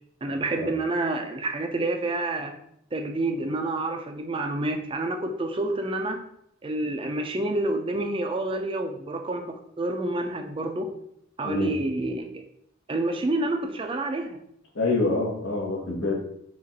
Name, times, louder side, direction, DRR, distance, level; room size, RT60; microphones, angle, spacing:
voice 1, 0.2-2.6 2.9-6.2 6.6-10.9 11.4-12.4 12.9-14.4, right 2 dB, 25° right, 5 dB, 0.4 m, -28 dB
voice 2, 14.7-16.2, left 3 dB, 80° left, -1 dB, 1.3 m, -26 dB
5.1 x 2.5 x 4.0 m, 0.72 s
head